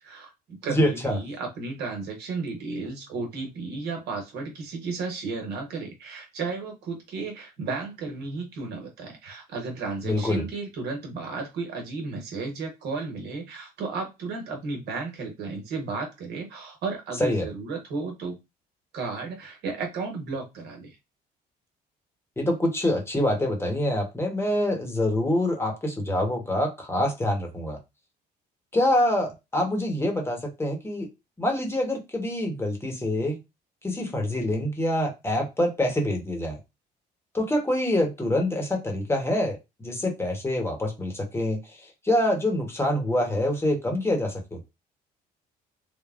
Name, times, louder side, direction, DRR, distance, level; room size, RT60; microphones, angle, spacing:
voice 1, 0.0-18.4 18.9-21.0, right 4 dB, 75° right, 2 dB, 1.2 m, -33 dB
voice 2, 0.7-1.2 10.0-10.5 17.2-17.5 22.4-27.8 28.7-31.1 31.4-33.4 33.8-36.6 37.3-44.6, left 1 dB, 15° left, 2 dB, 0.9 m, -26 dB
3.4 x 2.2 x 2.4 m, 0.23 s
cardioid pair, 110°, 17 cm